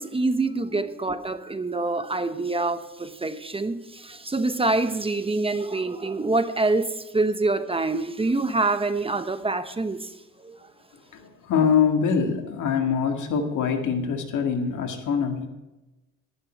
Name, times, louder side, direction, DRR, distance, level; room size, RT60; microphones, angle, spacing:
voice 1, 0.0-10.7, right 3 dB, 20° right, 10 dB, 0.9 m, -26 dB
voice 2, 11.1-15.5, left 6 dB, 80° left, 4 dB, 2.1 m, -24 dB
12.0 x 11.0 x 4.5 m, 1.1 s
cardioid pair, 90°, 30 cm